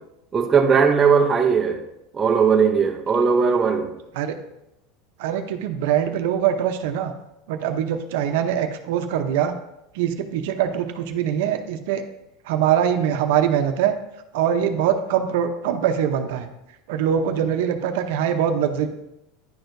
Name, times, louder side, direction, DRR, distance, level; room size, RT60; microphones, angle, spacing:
voice 1, 0.3-1.8 2.1-3.9, right 6 dB, 15° right, 2 dB, 0.5 m, -18 dB
voice 2, 5.2-7.1 7.5-9.6 9.9-12.0 12.4-13.9 14.3-16.5 16.9-18.9, right 9 dB, 70° right, 7 dB, 0.6 m, -23 dB
10.0 x 4.5 x 2.6 m, 0.86 s
supercardioid pair, 155°, 0 cm